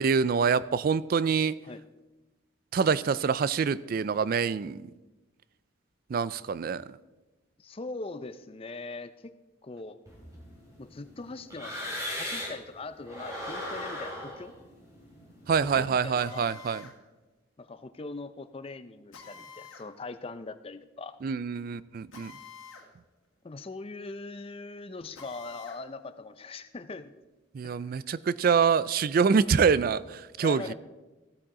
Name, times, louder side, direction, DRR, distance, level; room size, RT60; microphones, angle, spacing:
voice 1, 0.0-1.6 2.7-4.9 6.1-6.8 15.5-16.9 21.2-22.3 27.5-30.7, right 6 dB, 45° right, 18 dB, 0.3 m, -25 dB
voice 2, 7.6-9.3 9.6-10.0 10.8-14.5 15.6-16.6 17.6-21.2 23.4-27.1 27.6-28.0 30.4-30.7, left 3 dB, 30° left, 12 dB, 0.4 m, -41 dB
sound 1, 10.1-12.7 13.0-16.1, left 1 dB, 15° right, 2.7 m, -39 dB
Drill, 16.2-17.0 19.1-19.9 22.1-22.9 23.2-23.3 25.1-25.8, left 5 dB, 80° left, 2.0 m, -48 dB
15.0 x 8.7 x 3.7 m, 1.1 s
head